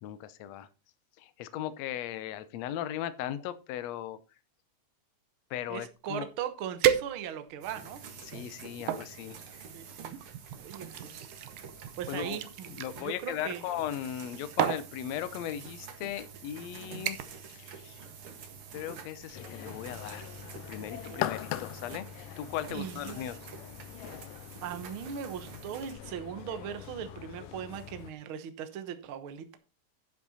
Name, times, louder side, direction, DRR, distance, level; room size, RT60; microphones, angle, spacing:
voice 1, 0.0-0.7 1.2-4.2 5.5-6.3 8.2-9.6 12.1-12.4 12.7-17.2 17.5-18.1 18.7-20.3 20.7-22.1 22.4-23.4, left 11 dB, 70° left, 14 dB, 1.7 m, -37 dB
voice 2, 5.7-8.0 9.7-10.2 10.5-11.3 11.9-12.7 13.0-13.6 20.0-20.3 20.8-21.3 22.7-23.2 24.6-29.6, right 9 dB, 70° right, 9 dB, 1.3 m, -39 dB
sound 1, 6.2-6.3 6.8-7.6 8.2-9.1 10.0-12.9 14.0-14.3 14.6-14.9 15.8-15.9 16.4-16.6 17.1-17.5 17.8-18.1 18.5-18.6, right 11 dB, 85° right, 2.6 m, -32 dB
sound 2, 7.6-25.9, right 6 dB, 50° right, 2.0 m, -48 dB
sound 3, 19.3-28.1, left 13 dB, 85° left, 2.3 m, -42 dB
11.0 x 7.6 x 4.2 m, 0.31 s
omnidirectional pair, 3.8 m